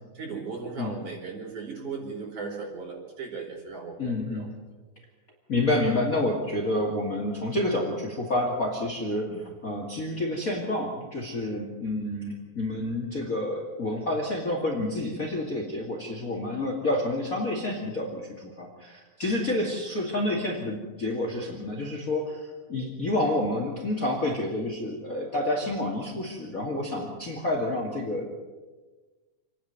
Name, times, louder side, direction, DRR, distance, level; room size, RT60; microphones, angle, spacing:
voice 1, 0.1-4.5 9.3-9.4, right 4 dB, 70° right, 0 dB, 5.9 m, -37 dB
voice 2, 4.0-4.5 5.5-28.3, left 1 dB, 30° left, 0 dB, 2.4 m, -29 dB
27.5 x 10.0 x 9.5 m, 1.3 s
omnidirectional pair, 3.5 m